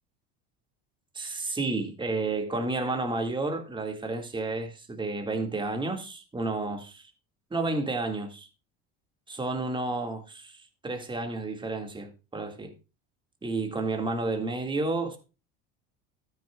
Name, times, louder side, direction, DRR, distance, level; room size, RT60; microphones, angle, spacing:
voice 1, 1.1-7.1 7.5-8.5 9.3-12.7 13.4-15.2, right 3 dB, 15° right, 2.1 m, -31 dB
13.5 x 9.3 x 2.4 m
supercardioid pair, 105°, 32 cm